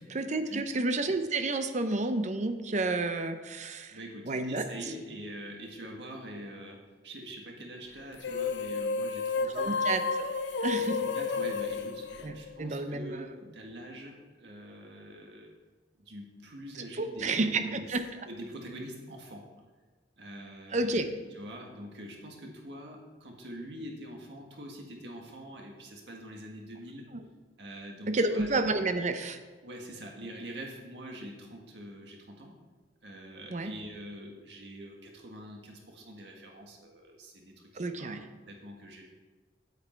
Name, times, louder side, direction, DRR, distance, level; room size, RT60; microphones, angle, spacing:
voice 1, 0.1-3.9 4.3-4.6 9.5-10.3 10.6-11.0 12.2-13.3 17.0-18.0 20.7-21.1 28.1-29.4 33.5-33.7 37.8-38.2, right 2 dB, 40° right, 8 dB, 0.7 m, -30 dB
voice 2, 3.9-9.8 10.7-15.5 16.0-17.9 18.2-19.5 20.2-21.0 21.3-27.1 27.6-28.5 29.6-32.6 33.0-38.2 38.5-39.1, equal, 75° right, 0 dB, 1.7 m, -44 dB
sound 1, 8.1-12.9, left 4 dB, 80° left, 0.6 m, -31 dB
8.2 x 8.1 x 4.5 m, 1.3 s
head